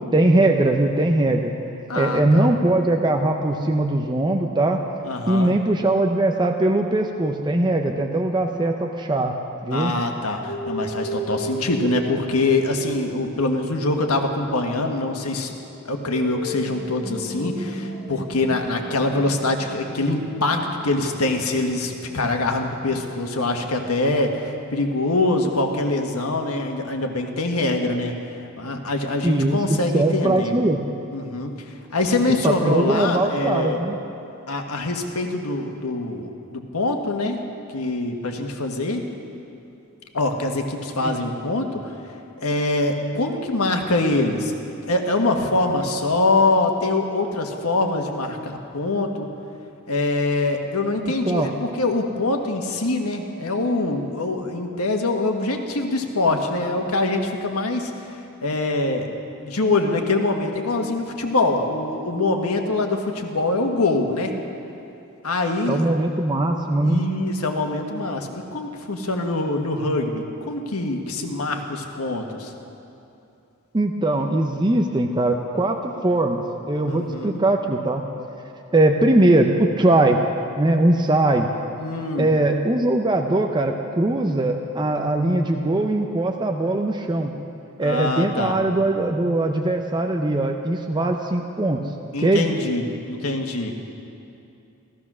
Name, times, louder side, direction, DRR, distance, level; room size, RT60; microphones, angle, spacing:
voice 1, 0.1-1.5 1.9-4.8 5.3-9.4 9.6-9.9 29.2-30.8 32.4-34.0 41.0-41.2 51.0-51.6 65.7-67.0 73.7-78.0 78.7-80.2 80.6-81.5 82.2-87.3 87.8-91.8 92.2-92.4, right 2 dB, 20° right, 3 dB, 0.7 m, -21 dB
voice 2, 1.9-2.5 5.0-5.5 9.7-15.6 15.8-28.2 28.6-30.5 31.1-33.8 34.5-37.4 37.7-39.0 40.1-41.9 42.4-44.5 44.9-49.3 49.9-59.1 59.4-64.4 65.2-65.8 66.8-72.5 76.8-77.4 81.8-82.3 87.8-88.6 92.1-93.7, left 2 dB, 90° left, 3 dB, 1.5 m, -24 dB
sound 1, 10.4-23.6, right 1 dB, 30° left, 2.4 m, -35 dB
15.5 x 14.5 x 6.2 m, 2.7 s
head